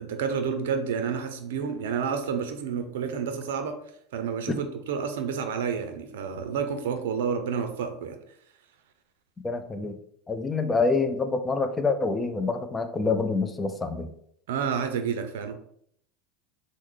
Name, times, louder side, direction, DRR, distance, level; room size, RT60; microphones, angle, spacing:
voice 1, 0.0-3.8 4.1-8.2 14.5-15.5, right 6 dB, 80° right, 7 dB, 0.5 m, -29 dB
voice 2, 9.4-9.9 10.3-14.1, left 4 dB, 15° left, 7 dB, 0.4 m, -26 dB
3.0 x 2.0 x 3.7 m, 0.67 s
supercardioid pair, 110°, 0 cm